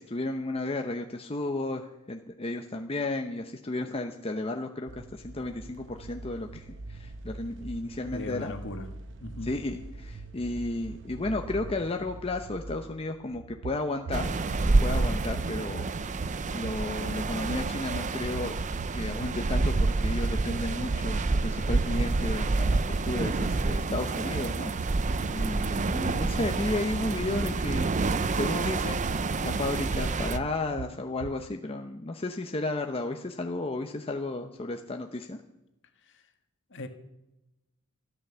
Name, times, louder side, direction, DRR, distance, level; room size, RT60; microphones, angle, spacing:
voice 1, 0.0-8.5 9.4-15.9 16.5-18.6 18.9-24.7 25.3-35.4, left 2 dB, 25° left, 0.8 m, -33 dB
sound 1, 4.9-13.2, right 2 dB, 55° right, 1.0 m, -43 dB
voice 2, 8.1-8.9 9.2-9.6 36.1-36.2 36.7-36.9, left 2 dB, 55° left, 1.7 m, -39 dB
sound 2, 13.3-31.5, right 6 dB, 80° right, 0.4 m, -41 dB
sound 3, 14.1-30.4, right 3 dB, 35° right, 0.6 m, -28 dB
13.5 x 12.5 x 6.9 m
head